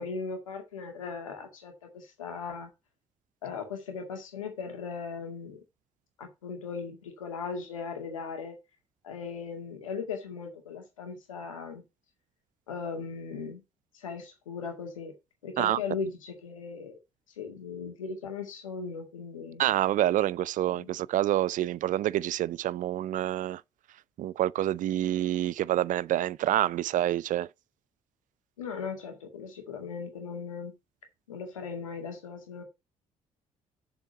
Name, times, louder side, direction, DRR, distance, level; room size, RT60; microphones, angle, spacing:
voice 1, 0.0-2.7 3.4-5.6 6.2-8.6 9.0-11.8 12.7-13.6 13.9-15.1 15.4-16.9 17.4-19.6 20.7-20.9 28.6-30.7 31.3-32.6, left 5 dB, 85° left, 2.0 m, -38 dB
voice 2, 19.6-23.6 24.2-27.5, right 13 dB, 50° right, 0.4 m, -27 dB
7.1 x 6.8 x 5.4 m
figure-of-eight pair, 45°, 17 cm